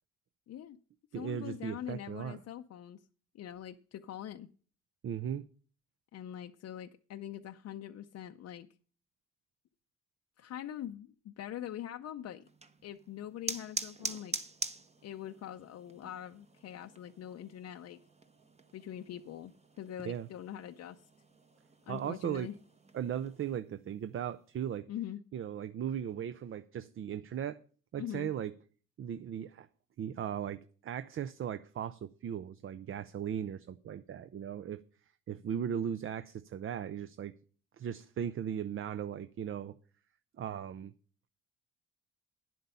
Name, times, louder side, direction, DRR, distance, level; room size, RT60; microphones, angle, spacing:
voice 1, 0.5-0.8 1.1-3.0 3.3-4.5 6.1-8.7 10.4-12.4 12.8-14.4 15.0-18.0 18.7-19.5 19.8-21.0 21.9-22.5 24.9-25.2 28.0-28.3, left 11 dB, 55° left, 0.5 m, -43 dB
voice 2, 1.1-2.4 5.0-5.4 20.0-20.3 21.9-22.5 22.9-24.9 25.3-27.6 27.9-28.5 29.0-29.7 30.0-34.8 35.3-37.3 37.8-39.7 40.4-40.9, right 9 dB, 45° right, 0.5 m, -37 dB
sound 1, 12.4-23.6, right 3 dB, 20° right, 0.9 m, -45 dB
10.0 x 7.7 x 5.5 m
cardioid pair, 90°, 30 cm